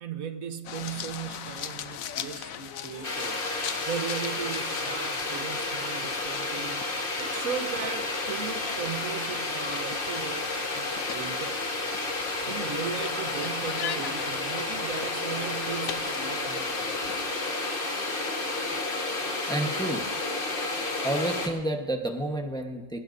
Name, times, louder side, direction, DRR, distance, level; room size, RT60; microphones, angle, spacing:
voice 1, 0.0-3.4 3.9-6.8 7.2-10.5 10.7-11.6 12.5-16.9, right 7 dB, 85° right, 9 dB, 1.4 m, -37 dB
sound 1, 0.6-17.3, left 9 dB, 80° left, 1.1 m, -41 dB
sound 2, 3.0-21.5, left 2 dB, 40° left, 1.5 m, -31 dB
voice 2, 19.5-20.1 21.0-23.0, right 1 dB, 5° left, 4 dB, 0.9 m, -30 dB
21.0 x 20.5 x 2.6 m, 1.2 s
omnidirectional pair, 1.4 m